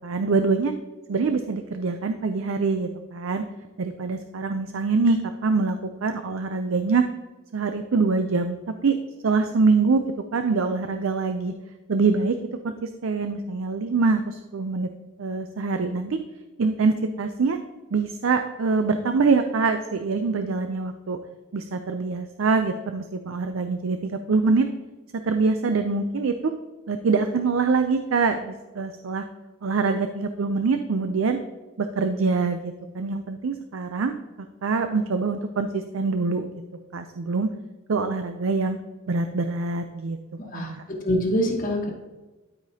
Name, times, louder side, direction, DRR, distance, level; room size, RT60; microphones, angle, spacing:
voice 1, 0.0-0.7 1.1-3.4 3.8-7.0 7.5-9.0 9.2-10.0 10.3-11.5 11.9-12.4 12.6-14.9 15.2-16.2 16.6-17.6 17.9-21.2 21.5-24.7 25.2-26.5 26.9-29.2 29.6-31.4 31.8-34.1 34.6-36.5 36.9-37.5 37.9-38.8 39.1-40.2 40.5-40.8, right 4 dB, 70° right, 7 dB, 0.5 m, -24 dB
voice 2, 40.4-40.7 41.0-41.9, equal, 40° left, -1 dB, 1.3 m, -24 dB
12.5 x 5.0 x 2.8 m, 1.2 s
head